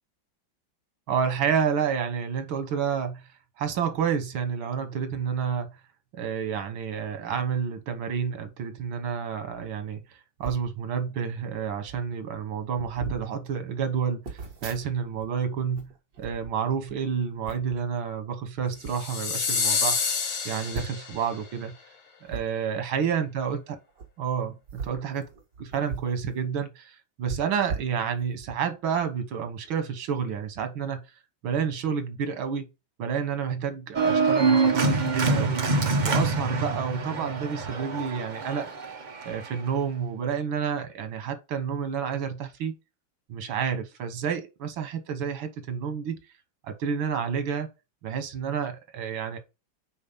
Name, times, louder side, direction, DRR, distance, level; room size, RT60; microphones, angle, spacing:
voice 1, 1.1-3.3 3.6-5.7 6.1-10.0 10.4-15.9 16.2-20.0 20.5-21.7 22.2-23.8 24.2-25.3 25.6-31.0 31.4-32.7 33.0-35.7 36.0-38.7 39.2-42.8 43.3-46.2 46.6-47.7 48.0-49.4, right 7 dB, 90° right, 2.0 m, -29 dB
sound 1, 10.4-10.7 11.5-11.6 11.8-12.1 12.7-13.3 14.2-15.3 15.6-17.0 17.5-17.8 18.6-19.0 19.5-19.6 19.8-19.9 20.7-21.2 22.3-22.4 23.9-24.1 24.6-26.2 26.5-26.6 27.3-28.5 29.0-29.1, right 4 dB, 55° right, 2.2 m, -38 dB
sound 2, 18.9-21.3, left 5 dB, 80° left, 2.2 m, -28 dB
Organ, 33.9-39.6, right 4 dB, 40° right, 0.6 m, -25 dB
5.7 x 4.3 x 5.3 m
omnidirectional pair, 2.2 m